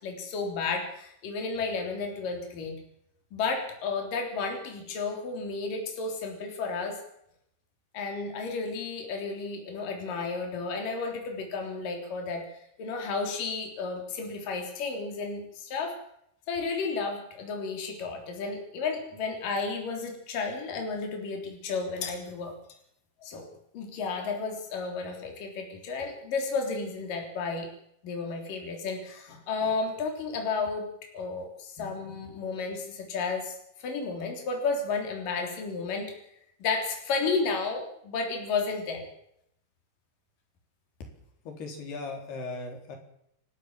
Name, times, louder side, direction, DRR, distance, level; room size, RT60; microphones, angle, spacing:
voice 1, 0.0-2.8 3.3-7.0 7.9-16.0 16.5-22.5 23.2-23.5 23.7-27.7 28.0-30.9 31.1-36.1 36.6-39.1, left 4 dB, 60° left, 3 dB, 5.1 m, -32 dB
voice 2, 41.5-43.0, left 3 dB, 90° left, 3 dB, 6.1 m, -38 dB
29.5 x 12.5 x 7.6 m, 0.74 s
omnidirectional pair, 4.5 m